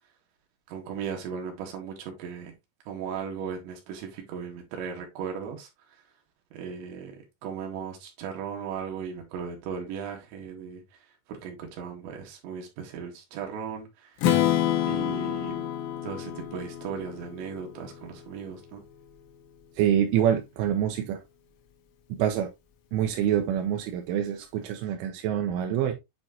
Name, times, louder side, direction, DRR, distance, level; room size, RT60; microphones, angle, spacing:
voice 1, 0.7-2.5 2.9-6.0 6.5-11.0 11.3-14.2 14.9-15.7 16.0-18.8, right 7 dB, 70° right, 3.8 m, -37 dB
Strum, 14.2-18.1, left 11 dB, 80° left, 3.9 m, -28 dB
voice 2, 19.8-21.2 22.1-22.5 22.9-25.9, right 10 dB, 85° right, 3.2 m, -26 dB
8.9 x 4.4 x 2.8 m
omnidirectional pair, 5.7 m